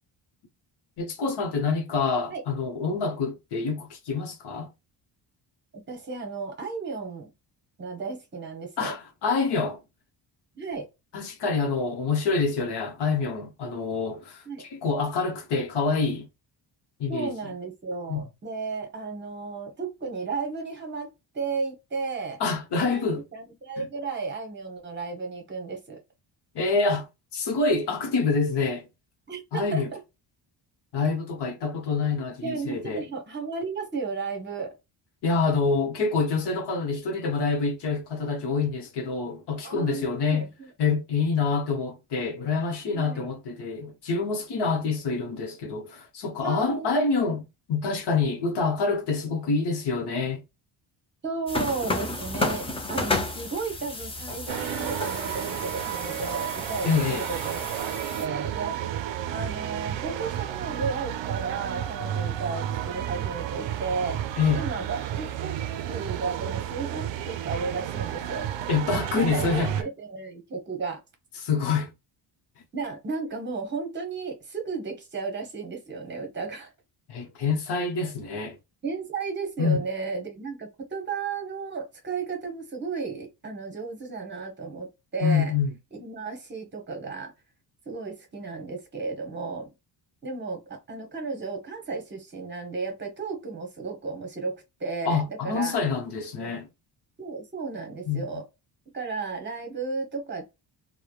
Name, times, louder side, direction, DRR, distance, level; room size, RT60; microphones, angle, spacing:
voice 1, 1.0-4.7 8.8-9.8 11.1-16.3 17.0-17.3 18.1-18.2 22.4-23.2 26.5-27.1 27.3-28.9 29.5-29.9 30.9-33.0 35.2-40.5 40.8-47.4 47.7-50.4 56.8-57.3 64.4-64.6 68.7-69.7 71.4-71.9 77.1-78.6 79.6-79.8 85.2-85.7 95.0-96.7 98.1-98.3, left 4 dB, 55° left, 1.0 m, -26 dB
voice 2, 5.9-7.3 7.8-8.9 10.5-10.9 14.4-14.6 17.1-22.4 22.8-26.0 29.3-30.0 32.4-34.7 39.6-40.7 42.9-43.3 46.4-47.0 51.2-58.8 59.3-64.2 64.5-65.6 65.9-68.5 69.1-71.0 72.7-76.7 78.8-85.6 86.0-87.3 87.9-89.7 90.2-95.8 96.4-96.5 97.2-98.4 98.9-100.4, right 4 dB, 25° right, 0.9 m, -34 dB
sound 1, 51.5-58.3, left 2 dB, 15° left, 0.4 m, -32 dB
sound 2, 54.5-69.8, right 11 dB, 70° right, 0.5 m, -32 dB
3.1 x 2.2 x 2.3 m
cardioid pair, 160°, 47 cm